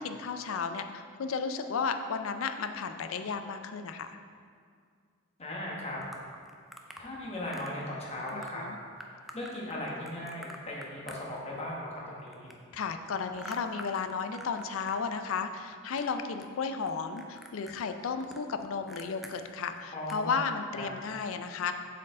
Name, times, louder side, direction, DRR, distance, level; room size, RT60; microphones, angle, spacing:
voice 1, 0.0-4.1 8.3-8.8 12.7-21.7, left 5 dB, 70° left, 8 dB, 0.4 m, -34 dB
voice 2, 5.4-6.0 7.0-8.6 9.3-12.5 19.9-20.3 20.7-20.9, left 1 dB, 30° left, -4 dB, 1.2 m, -38 dB
sound 1, 6.0-7.1 7.5-7.8 8.1-8.5 9.0-11.8 12.0-15.0 15.2-16.1 16.4-16.9 17.2-19.3 19.7-19.8 20.1-20.3, equal, ahead, 0.4 m, -47 dB
7.4 x 4.5 x 3.7 m, 2.1 s
head